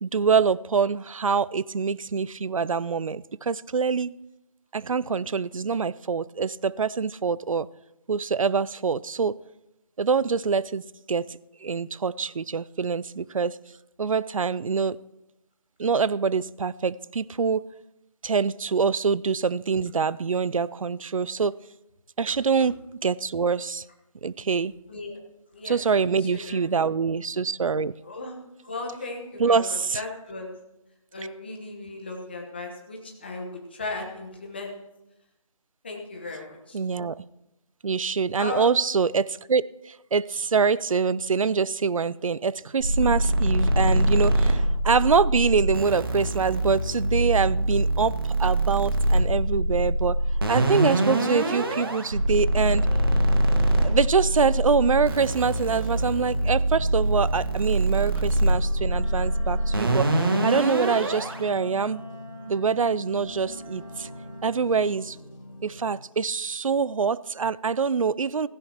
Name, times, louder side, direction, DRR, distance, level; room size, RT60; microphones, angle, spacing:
voice 1, 0.0-4.1 4.7-7.7 8.1-9.4 10.0-10.8 11.1-13.6 14.0-15.0 15.8-17.6 18.2-21.5 22.2-23.8 24.2-24.7 25.6-27.9 29.4-30.0 36.7-37.2 37.8-48.1 48.4-50.2 50.5-52.8 53.8-62.0 62.5-64.1 64.4-65.2 65.6-68.5, right 5 dB, 70° right, 20 dB, 0.4 m, -25 dB
voice 2, 26.3-26.6 28.0-28.4 28.6-30.5 31.1-34.8 35.8-36.8 38.4-38.7, left 2 dB, 20° left, 1 dB, 1.1 m, -36 dB
sound 1, 42.8-61.4, right 1 dB, 40° right, 1.7 m, -24 dB
sound 2, 50.8-66.0, left 1 dB, 60° left, 5.8 m, -44 dB
Wind instrument woodwind instrument, 58.8-64.9, left 1 dB, ahead, 2.5 m, -43 dB
16.5 x 15.5 x 2.9 m, 0.90 s
figure-of-eight pair, 175°, 18 cm